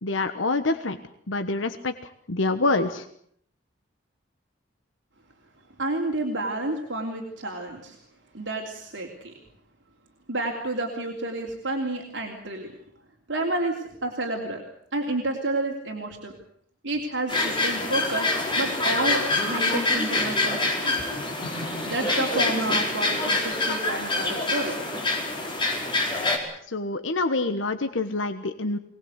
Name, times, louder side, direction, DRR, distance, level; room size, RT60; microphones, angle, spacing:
voice 1, 0.0-1.0 1.3-3.1 26.7-28.8, left 3 dB, 85° left, 8 dB, 1.3 m, -26 dB
voice 2, 5.8-8.0 8.3-9.3 10.3-12.7 13.3-14.6 14.9-16.3 16.8-21.0 21.8-24.8, right 2 dB, 70° right, 0 dB, 3.2 m, -30 dB
sound 1, 17.3-26.4, left 2 dB, 25° left, 4.7 m, -26 dB
24.0 x 19.0 x 8.2 m, 0.66 s
head